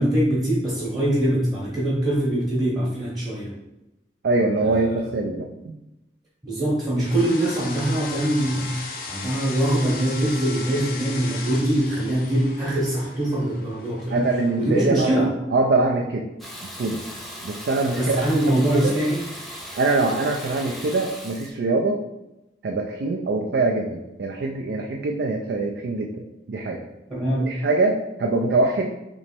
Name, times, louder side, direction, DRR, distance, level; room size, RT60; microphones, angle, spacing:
voice 1, 0.0-3.5 4.6-4.7 6.4-14.3 14.6-15.3 17.9-19.2 27.1-27.6, right 1 dB, 20° right, -6 dB, 0.9 m, -23 dB
voice 2, 4.2-5.5 14.1-15.1 15.5-16.3 16.6-17.0 17.4-18.9 19.8-22.0 22.6-26.8 27.5-28.9, right 3 dB, 70° right, 1 dB, 0.4 m, -23 dB
sound 1, 7.0-15.2, left 4 dB, 50° left, 0.5 m, -37 dB
Water tap faucet / Bathtub (filling or washing), 16.4-21.5, equal, ahead, 0.5 m, -38 dB
3.1 x 3.1 x 4.3 m, 0.94 s
head